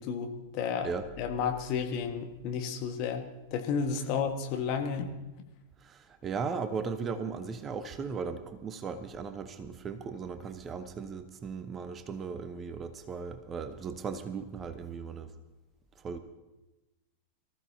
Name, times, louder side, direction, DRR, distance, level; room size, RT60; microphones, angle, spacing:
voice 1, 0.0-0.9 1.2-3.2 3.5-5.1, left 6 dB, 40° left, 4 dB, 1.6 m, -32 dB
voice 2, 5.8-15.3 16.0-16.2, right 5 dB, 25° right, 10 dB, 0.9 m, -37 dB
23.5 x 14.5 x 2.8 m, 1.1 s
figure-of-eight pair, 90°, 0 cm